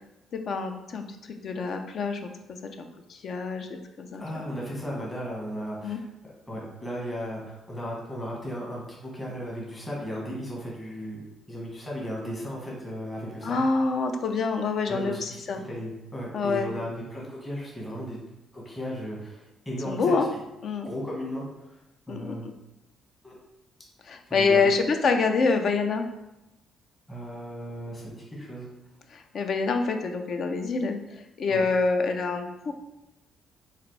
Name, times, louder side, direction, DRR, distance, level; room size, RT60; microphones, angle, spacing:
voice 1, 0.3-3.7 4.0-4.4 5.8-6.0 13.4-15.6 16.3-16.7 19.9-20.3 20.6-20.9 22.1-22.4 24.1-26.0 29.1-31.0 31.4-32.7, left 4 dB, 60° left, 6 dB, 0.4 m, -26 dB
voice 2, 4.2-6.0 6.5-11.2 11.5-13.6 14.9-18.2 18.5-20.1 20.8-21.8 22.1-22.5 23.2-23.3 24.3-24.7 27.1-28.7 31.5-31.6, equal, 20° left, -4 dB, 1.1 m, -35 dB
4.0 x 2.5 x 3.1 m, 0.91 s
cardioid pair, 90°, 0 cm